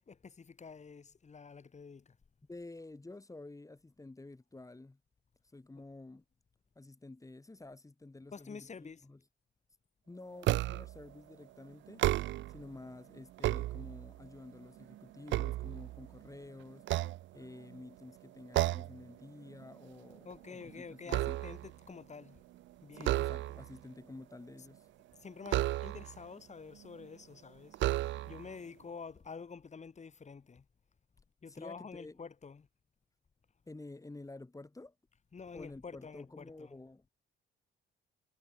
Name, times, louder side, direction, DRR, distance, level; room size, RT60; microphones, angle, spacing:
voice 1, 0.0-2.2 5.7-5.8 8.3-9.1 20.2-22.4 22.8-23.2 24.6-24.7 25.1-27.8 28.2-30.6 31.4-32.7 35.3-36.8, left 5 dB, 35° left, 4.5 m, -48 dB
voice 2, 2.5-5.0 5.5-6.2 6.8-9.2 10.1-12.1 12.5-16.9 17.3-21.4 22.9-24.9 31.5-32.2 33.7-34.9 35.5-37.1, left 2 dB, 15° left, 3.8 m, -50 dB
sound 1, 10.4-11.0 11.9-12.6 13.2-14.3 14.8-16.3 16.8-17.8 18.5-19.0 19.4-19.7 20.0-21.8 23.0-23.8 25.5-26.2 27.0-27.1 27.7-28.5, right 15 dB, 70° right, 0.4 m, -33 dB
cardioid pair, 90°, 20 cm